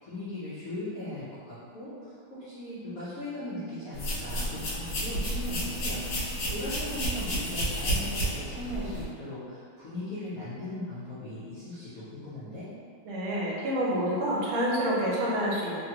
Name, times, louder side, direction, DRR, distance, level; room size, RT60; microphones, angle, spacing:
voice 1, 0.0-12.7, left 1 dB, 80° left, -11 dB, 0.7 m, -38 dB
sound 1, 3.9-9.0, equal, 60° left, 1.3 m, -31 dB
voice 2, 13.0-15.8, equal, 80° right, -5 dB, 1.4 m, -28 dB
3.6 x 2.2 x 2.8 m, 2.3 s
omnidirectional pair, 2.4 m